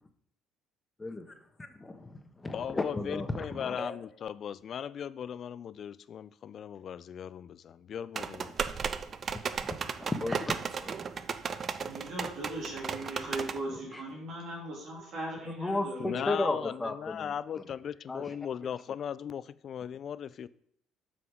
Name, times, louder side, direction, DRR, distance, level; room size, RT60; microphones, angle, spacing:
voice 1, 1.0-1.3 1.7-4.0 9.6-9.7 10.0-11.2 13.9-14.0 15.4-17.3 18.1-18.3, left 2 dB, 20° left, 1.3 m, -34 dB
voice 2, 2.5-8.5 16.0-20.5, left 8 dB, 50° left, 0.4 m, -38 dB
sound 1, 8.2-13.6, right 6 dB, 45° right, 0.5 m, -35 dB
voice 3, 11.8-16.5, right 1 dB, 60° right, 2.7 m, -39 dB
7.6 x 5.0 x 4.9 m
hypercardioid pair, 60°, 0 cm